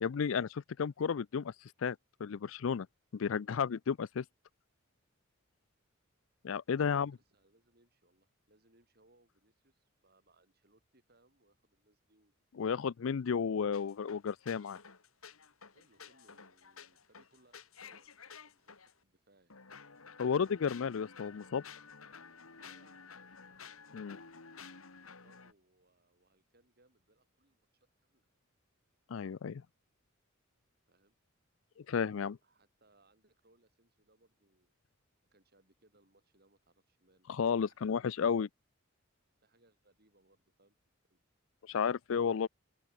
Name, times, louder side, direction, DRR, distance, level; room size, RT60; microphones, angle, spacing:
voice 1, 0.0-2.9 3.1-4.2 6.4-7.2 12.5-14.8 20.2-21.6 23.9-24.2 29.1-29.6 31.8-32.4 37.3-38.5 41.6-42.5, left 6 dB, 70° left, 0.4 m, -33 dB
voice 2, 6.7-12.5 13.0-13.2 15.7-18.7 19.0-19.6 22.6-23.0 25.0-28.3 30.9-31.2 32.4-34.7 35.2-37.3 37.6-38.4 39.4-40.8 41.1-41.2, right 2 dB, 50° right, 7.5 m, -70 dB
sound 1, 13.7-18.9 19.5-25.5, left 5 dB, 85° left, 2.6 m, -53 dB
open air
head